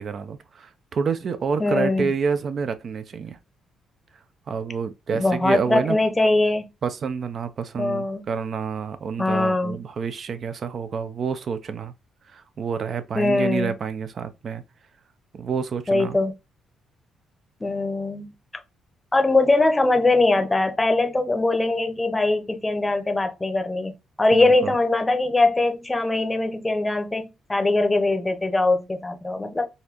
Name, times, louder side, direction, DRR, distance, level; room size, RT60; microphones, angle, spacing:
voice 1, 0.0-3.4 4.5-6.0 6.8-11.9 12.3-14.6 15.3-16.2 24.4-24.8, right 6 dB, 50° right, 0.5 m, -28 dB
voice 2, 1.6-2.1 5.1-6.7 7.8-8.2 9.2-9.8 13.1-13.7 15.9-16.3 17.6-18.3 19.1-23.9 24.2-29.7, left 2 dB, 15° left, 0.7 m, -21 dB
4.0 x 2.6 x 2.8 m
cardioid pair, 90°, 0 cm